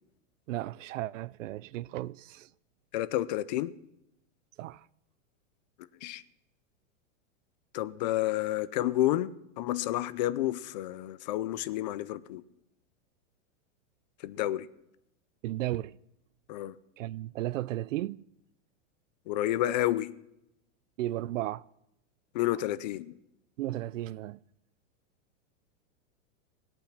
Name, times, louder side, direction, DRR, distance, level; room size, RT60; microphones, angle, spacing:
voice 1, 0.5-2.5 4.6-4.9 15.4-16.0 17.0-18.2 21.0-21.6 23.6-24.4, right 15 dB, 80° right, 0.6 m, -34 dB
voice 2, 2.9-3.7 6.0-6.2 7.7-9.3 9.6-12.4 14.2-14.7 16.5-16.8 19.3-20.1 22.3-23.1, left 14 dB, 35° left, 0.5 m, -30 dB
19.5 x 8.7 x 6.0 m
supercardioid pair, 165°, 38 cm